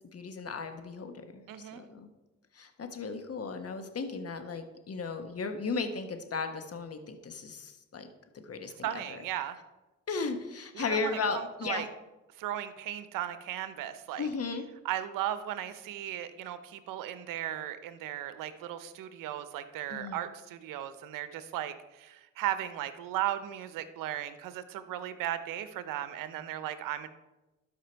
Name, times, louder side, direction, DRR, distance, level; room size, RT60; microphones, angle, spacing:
voice 1, 0.1-2.1 2.5-8.1 8.4-9.2 10.1-11.9 14.2-14.6 19.9-20.2, left 4 dB, 50° left, 7 dB, 1.4 m, -36 dB
voice 2, 1.5-1.8 8.8-9.6 10.7-11.9 12.4-14.3 14.8-27.1, right 12 dB, 85° right, 12 dB, 0.7 m, -36 dB
12.5 x 5.2 x 4.5 m, 1.1 s
supercardioid pair, 55°, 32 cm